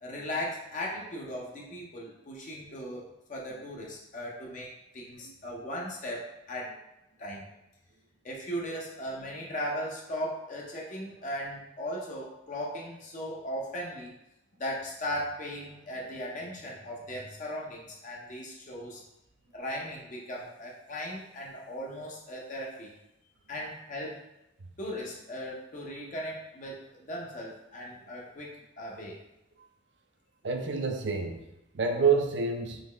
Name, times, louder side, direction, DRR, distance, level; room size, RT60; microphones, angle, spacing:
voice 1, 0.0-6.7 7.2-7.5 8.2-14.2 14.6-19.0 19.5-22.9 23.5-24.2 24.8-29.2, equal, 40° left, -3 dB, 0.6 m, -37 dB
voice 2, 30.4-31.4 31.7-32.8, right 5 dB, 65° right, 4 dB, 0.5 m, -27 dB
3.9 x 3.1 x 3.2 m, 0.90 s
head